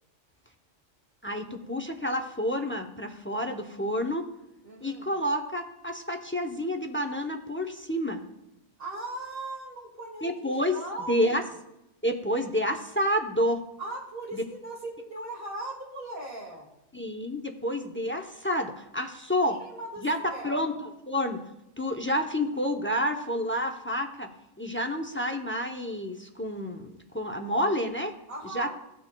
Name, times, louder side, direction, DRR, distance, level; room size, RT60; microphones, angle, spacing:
voice 1, 1.2-4.2 4.8-8.2 10.2-10.8 11.1-11.4 12.0-13.6 14.3-14.4 16.9-19.6 20.0-20.2 20.4-21.4 21.8-24.3 24.6-28.1 28.5-28.7, equal, 15° left, 5 dB, 0.4 m, -29 dB
voice 2, 4.6-5.2 8.8-11.4 13.8-16.7 19.5-20.7 28.3-28.7, right 2 dB, 50° right, -1 dB, 2.1 m, -39 dB
17.0 x 6.1 x 2.2 m, 0.89 s
omnidirectional pair, 1.2 m